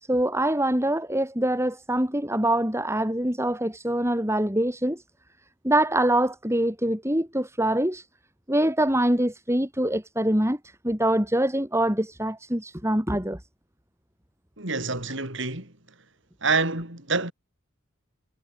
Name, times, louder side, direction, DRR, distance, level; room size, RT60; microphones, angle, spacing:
voice 1, 0.1-5.0 5.6-8.0 8.5-13.4, right 1 dB, 15° right, 6.7 m, -24 dB
voice 2, 14.6-15.7 16.4-17.3, right 3 dB, 60° right, 6.8 m, -27 dB
head